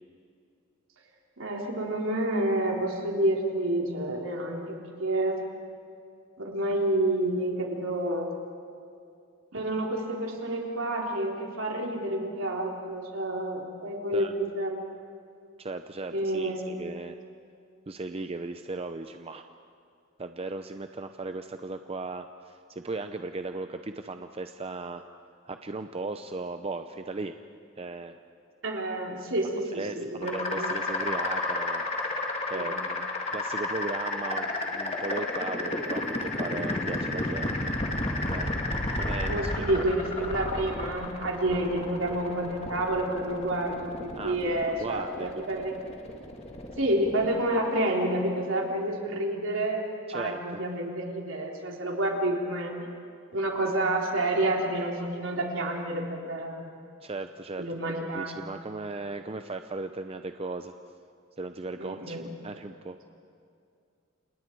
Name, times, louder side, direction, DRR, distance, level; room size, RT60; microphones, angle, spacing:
voice 1, 1.4-5.4 6.4-8.3 9.5-14.8 16.1-16.8 28.6-30.7 32.5-32.8 39.3-45.7 46.8-49.9 50.1-52.7 53.3-56.7 57.6-58.4 61.8-62.2, right 1 dB, 70° right, -1 dB, 3.8 m, -29 dB
voice 2, 15.6-17.2 17.9-19.5 20.2-25.0 25.4-27.3 27.8-28.2 29.7-32.1 32.5-33.0 33.3-37.7 38.3-38.5 39.0-39.8 40.2-40.3 44.2-45.6 50.1-50.6 57.0-60.7 61.4-62.2 62.4-63.0, right 3 dB, 30° right, 7 dB, 0.6 m, -37 dB
sound 1, 30.2-49.0, left 2 dB, 30° left, 2.3 m, -32 dB
29.5 x 27.5 x 4.7 m, 2.4 s
head